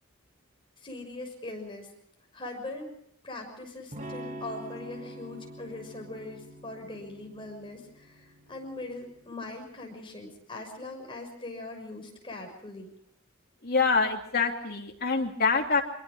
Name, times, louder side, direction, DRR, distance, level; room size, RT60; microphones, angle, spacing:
voice 1, 0.8-1.9 2.3-2.9 3.2-12.9, left 2 dB, 25° left, 1 dB, 6.3 m, -41 dB
Electric guitar / Strum, 3.9-9.6, right 1 dB, 40° right, 1.9 m, -45 dB
voice 2, 13.6-15.8, left 4 dB, 50° left, 1 dB, 3.0 m, -25 dB
25.0 x 23.0 x 5.0 m, 0.66 s
head